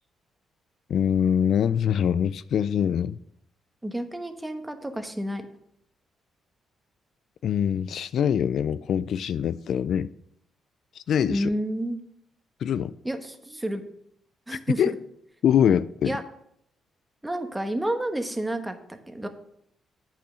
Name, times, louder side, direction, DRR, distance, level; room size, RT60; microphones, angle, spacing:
voice 1, 0.9-3.2 7.4-10.1 11.0-11.5 12.6-12.9 14.8-14.9 15.4-16.2, left 8 dB, 65° left, 0.3 m, -24 dB
voice 2, 3.8-5.4 11.3-12.0 13.0-13.8 14.5-15.0 16.0-16.2 17.2-19.3, right 1 dB, 10° right, 1.1 m, -30 dB
8.7 x 5.7 x 6.2 m
cardioid pair, 95°, 0 cm